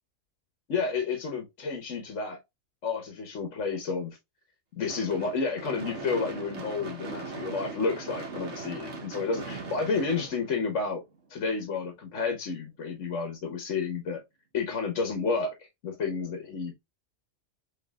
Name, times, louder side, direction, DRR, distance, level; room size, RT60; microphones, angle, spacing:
voice 1, 0.7-2.4 2.8-4.2 4.8-11.0 11.3-14.2 14.5-15.5 15.8-16.8, left 4 dB, 75° left, 1.4 m, -31 dB
Gunshot gunfire / Fireworks, 4.9-11.2, right 3 dB, 65° right, 1.5 m, -39 dB
6.7 x 3.0 x 2.3 m
omnidirectional pair, 1.3 m